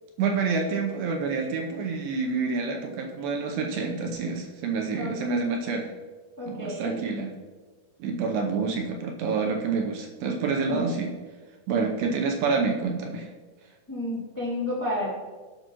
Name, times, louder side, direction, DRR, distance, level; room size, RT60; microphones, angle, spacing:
voice 1, 0.2-5.9 6.5-7.3 8.0-11.1 11.7-13.3, right 4 dB, 75° right, 2 dB, 2.2 m, -28 dB
voice 2, 6.4-7.0 10.7-11.0 13.9-15.2, left 1 dB, 25° left, -6 dB, 0.4 m, -31 dB
15.5 x 5.9 x 3.0 m, 1.3 s
omnidirectional pair, 4.8 m